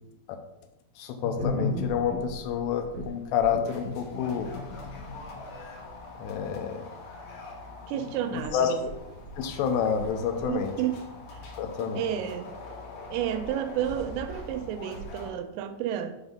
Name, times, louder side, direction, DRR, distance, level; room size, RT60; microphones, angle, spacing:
voice 1, 1.0-4.5 6.2-6.8 8.0-8.7 9.4-10.7 11.6-12.0, left 7 dB, 80° left, 2.8 m, -29 dB
sound 1, 1.2-2.2 2.9-3.1 3.5-5.6, left 3 dB, 55° right, 0.6 m, -34 dB
sound 2, 1.3-15.3, left 1 dB, 65° left, 2.3 m, -43 dB
voice 2, 7.9-8.8 10.5-11.0 11.3-11.4 11.9-12.6 13.1-16.1, right 10 dB, 90° right, 2.9 m, -31 dB
6.8 x 4.1 x 5.1 m
omnidirectional pair, 5.1 m